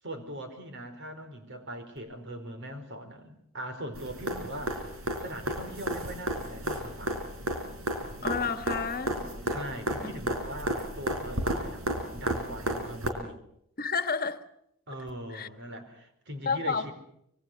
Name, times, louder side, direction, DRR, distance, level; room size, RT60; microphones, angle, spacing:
voice 1, 0.0-7.2 9.5-11.9 12.1-13.4 14.9-16.9, right 1 dB, 60° right, 4.7 m, -41 dB
sound 1, 3.9-13.1 15.1-15.2, right 1 dB, 75° right, 4.4 m, -33 dB
voice 2, 8.2-9.2 10.0-10.2 13.8-14.4 15.3-15.5 16.4-16.9, left 5 dB, 45° left, 1.4 m, -30 dB
25.5 x 23.0 x 6.7 m
head